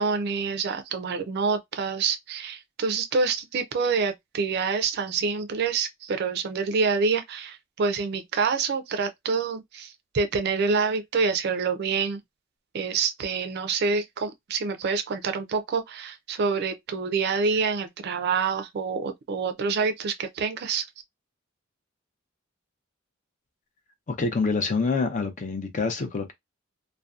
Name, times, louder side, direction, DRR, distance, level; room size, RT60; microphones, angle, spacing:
voice 1, 0.0-12.2 12.7-20.8, right 5 dB, 55° right, 0.4 m, -27 dB
voice 2, 24.1-26.3, left 4 dB, 40° left, 0.5 m, -26 dB
2.6 x 2.1 x 2.3 m
head